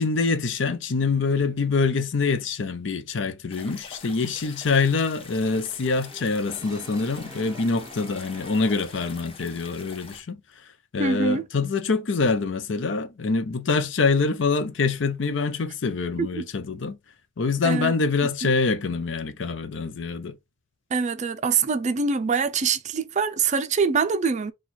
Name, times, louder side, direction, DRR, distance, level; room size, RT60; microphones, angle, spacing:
voice 1, 0.0-10.4 10.9-17.0 17.4-20.4, left 4 dB, 70° left, 0.6 m, -25 dB
sound 1, 3.5-10.2, left 4 dB, 30° left, 0.8 m, -45 dB
Brass instrument, 5.4-9.2, right 1 dB, 20° right, 1.0 m, -46 dB
voice 2, 11.0-11.4 16.2-16.5 17.6-17.9 20.9-24.5, right 5 dB, 40° right, 0.4 m, -24 dB
4.4 x 2.3 x 4.1 m
head